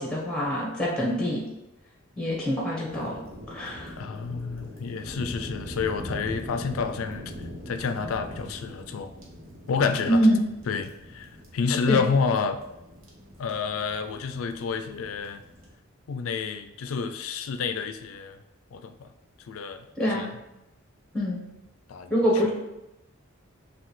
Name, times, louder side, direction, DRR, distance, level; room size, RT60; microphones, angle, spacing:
voice 1, 0.0-1.4 2.2-3.2 3.5-3.9 10.1-10.4 11.9-12.0 20.0-20.3 21.1-21.4 22.1-22.5, equal, 5° left, -3 dB, 1.0 m, -24 dB
sound 1, 2.9-15.7, equal, 75° right, 1.1 m, -42 dB
voice 2, 4.0-9.1 9.7-10.2 10.7-12.6 13.4-15.4 16.1-18.4 18.7-19.1 19.5-19.8 20.1-20.3 21.9-22.3, left 5 dB, 80° left, 9 dB, 0.4 m, -29 dB
5.6 x 2.3 x 3.1 m, 0.93 s
head